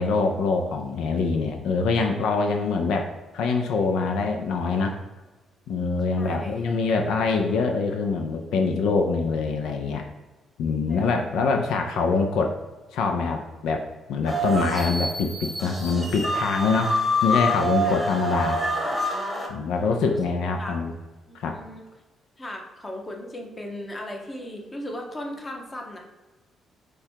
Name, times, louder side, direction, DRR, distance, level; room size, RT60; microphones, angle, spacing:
voice 1, 0.0-5.0 5.7-10.0 10.6-12.6 12.9-13.8 14.1-18.6 19.5-20.9 21.3-21.6, left 4 dB, 85° left, 4 dB, 0.4 m, -24 dB
voice 2, 6.1-6.7 7.3-7.4 10.9-11.2 14.7-14.9 17.8-18.0 20.1-20.2 20.6-20.7 21.3-21.8 22.4-26.0, left 1 dB, 25° left, 1 dB, 0.9 m, -37 dB
sound 1, 14.3-19.5, equal, 5° left, 1.1 m, -26 dB
4.8 x 2.3 x 4.4 m, 1.2 s
cardioid pair, 90°, 0 cm